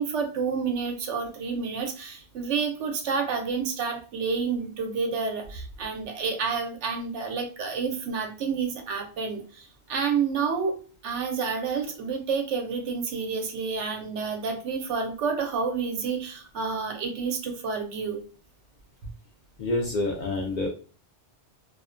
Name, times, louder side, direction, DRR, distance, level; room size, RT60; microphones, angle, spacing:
voice 1, 0.0-10.8 11.0-18.2, right 5 dB, 85° right, 4 dB, 0.9 m, -29 dB
voice 2, 19.6-20.7, left 2 dB, 60° left, 0 dB, 0.5 m, -27 dB
2.4 x 2.1 x 2.4 m, 0.38 s
omnidirectional pair, 1.2 m